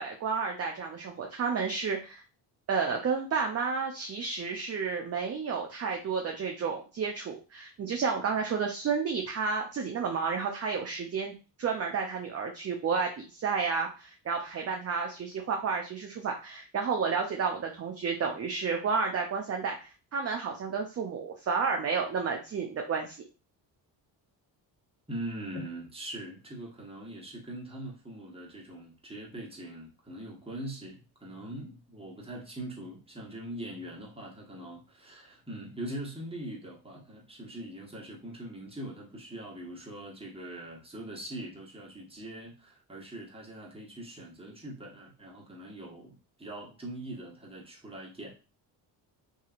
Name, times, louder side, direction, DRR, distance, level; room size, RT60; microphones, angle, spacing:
voice 1, 0.0-2.2 2.7-23.2, right 5 dB, 30° right, 2 dB, 0.6 m, -31 dB
voice 2, 25.1-48.3, right 1 dB, 10° right, -2 dB, 1.3 m, -42 dB
2.7 x 2.7 x 2.4 m, 0.33 s
supercardioid pair, 55°, 48 cm